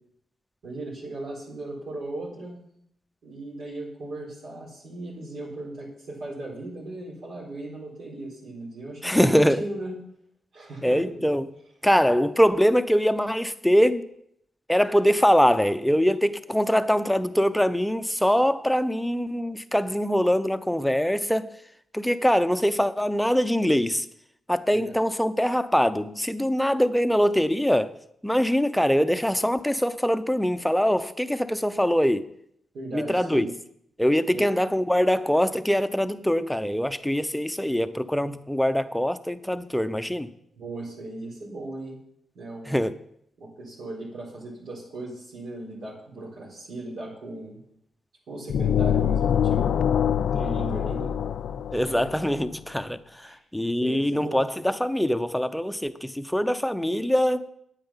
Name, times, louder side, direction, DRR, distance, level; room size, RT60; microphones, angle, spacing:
voice 1, 0.6-2.6 3.2-10.0 10.5-11.2 24.7-25.0 32.7-33.5 34.3-34.4 40.6-42.0 42.3-42.8 43.4-47.6 48.3-49.9 50.3-51.1 51.7-52.1 53.2-53.4 53.8-54.4, right 2 dB, 80° right, 3.9 m, -37 dB
voice 2, 9.0-9.7 10.8-11.5 11.8-14.1 14.7-21.5 21.9-24.1 24.5-27.9 28.2-32.3 32.9-33.5 34.0-40.3 42.7-43.0 51.7-57.5, equal, 5° left, 0.6 m, -23 dB
sound 1, 48.5-52.3, left 9 dB, 80° left, 0.4 m, -24 dB
9.2 x 8.9 x 5.7 m
cardioid pair, 105°, 0 cm